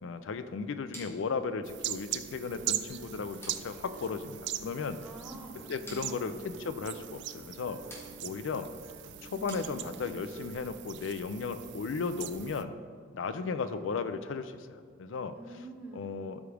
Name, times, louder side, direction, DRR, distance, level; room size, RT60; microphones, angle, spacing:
voice 1, 0.0-5.0 5.7-6.3 6.6-7.8 8.2-8.7 9.2-12.7 13.1-14.7 15.0-15.4 15.9-16.4, left 4 dB, 80° left, 11 dB, 0.4 m, -35 dB
sound 1, 0.9-10.3, equal, 15° left, 2.2 m, -54 dB
sound 2, 1.6-12.6, right 13 dB, 65° right, 0.4 m, -41 dB
Acoustic guitar, 2.5-10.5, right 1 dB, 85° right, 0.8 m, -51 dB
voice 2, 5.0-6.5 15.3-16.1, right 1 dB, 10° right, 1 dB, 0.9 m, -47 dB
13.0 x 5.0 x 3.4 m, 2.2 s
head